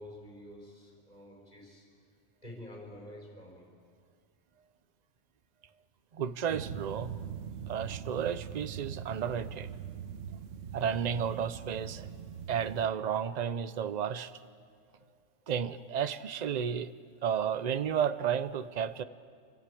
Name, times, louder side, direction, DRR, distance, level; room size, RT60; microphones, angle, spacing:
voice 1, 0.0-1.9 2.4-3.7, left 1 dB, 30° left, -1 dB, 4.7 m, -48 dB
voice 2, 6.1-7.2 7.7-9.7 10.7-12.1 12.5-14.3 15.5-16.9 17.2-19.0, right 8 dB, 45° right, 14 dB, 0.6 m, -32 dB
sound 1, 6.5-12.9, right 8 dB, 75° right, 1.1 m, -42 dB
28.0 x 13.0 x 8.4 m, 2.1 s
omnidirectional pair, 1.3 m